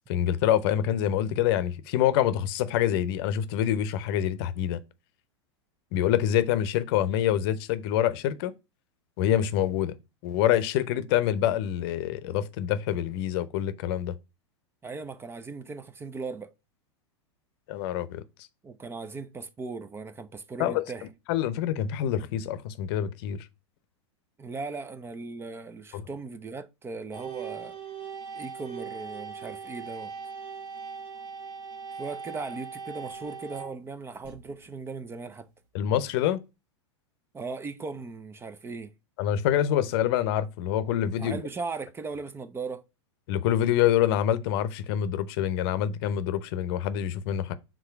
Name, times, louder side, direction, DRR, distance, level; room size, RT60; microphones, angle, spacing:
voice 1, 0.1-4.8 5.9-8.5 9.2-10.0 10.2-14.1 17.7-18.2 20.6-20.8 21.3-23.5 25.9-26.0 35.7-36.4 39.2-41.4 43.3-47.5, left 11 dB, 55° left, 0.7 m, -26 dB
voice 2, 14.8-16.5 18.6-21.1 24.4-27.8 28.3-30.1 31.9-35.5 37.3-38.9 41.2-42.8, right 4 dB, 15° right, 0.5 m, -38 dB
sound 1, 27.1-35.0, right 6 dB, 50° right, 1.4 m, -40 dB
4.9 x 3.8 x 5.6 m
hypercardioid pair, 110°, 15 cm